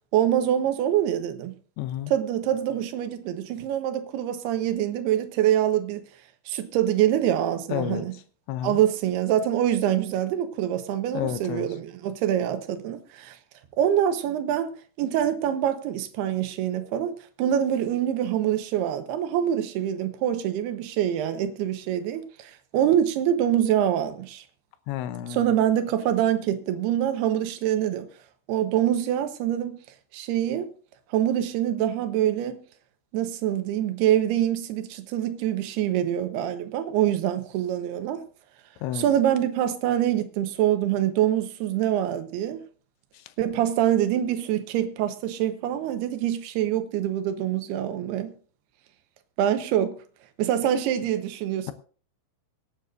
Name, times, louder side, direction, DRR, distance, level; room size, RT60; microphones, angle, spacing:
voice 1, 0.1-1.5 2.1-6.0 6.5-8.1 8.6-13.4 13.8-14.7 15.0-24.4 25.3-28.1 28.5-29.8 30.1-30.7 31.1-32.6 33.1-38.2 38.9-42.6 43.4-48.3 49.4-50.0 50.4-51.7, right 11 dB, 75° right, 2.8 m, -25 dB
voice 2, 1.8-2.1 7.7-8.0 8.5-8.8 11.1-11.7 24.9-25.4 38.8-39.0, left 11 dB, 80° left, 3.0 m, -30 dB
24.5 x 9.5 x 2.6 m
omnidirectional pair, 5.2 m